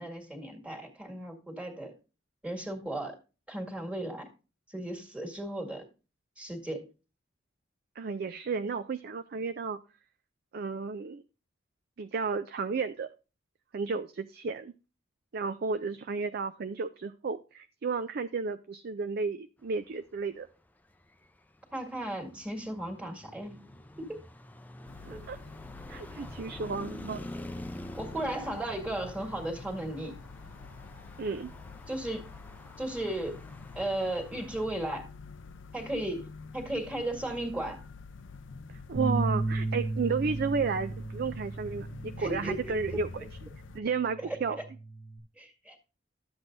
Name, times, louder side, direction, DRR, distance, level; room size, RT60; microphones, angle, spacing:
voice 1, 0.0-1.9 2.4-3.2 3.5-4.3 4.7-5.8 6.4-6.9 21.7-23.6 24.0-24.2 25.1-25.2 27.9-30.2 31.9-32.3 32.8-33.4 33.8-35.1 35.7-36.3 36.5-37.8 42.0-43.0 44.2-44.4 45.4-45.8, right 1 dB, 5° right, 1.9 m, -35 dB
voice 2, 8.0-9.8 10.5-11.2 12.0-13.1 13.7-14.7 15.3-20.5 25.0-25.4 25.9-27.3 31.2-31.5 38.9-43.1 43.7-44.6, right 5 dB, 50° right, 0.4 m, -32 dB
Traffic noise roadway noise, 20.9-34.7, left 1 dB, 10° left, 0.5 m, -47 dB
sound 1, 24.9-43.8, left 4 dB, 70° left, 0.6 m, -47 dB
Bass guitar, 38.9-43.4 43.8-45.2, right 2 dB, 85° right, 2.5 m, -35 dB
12.0 x 7.9 x 2.6 m
head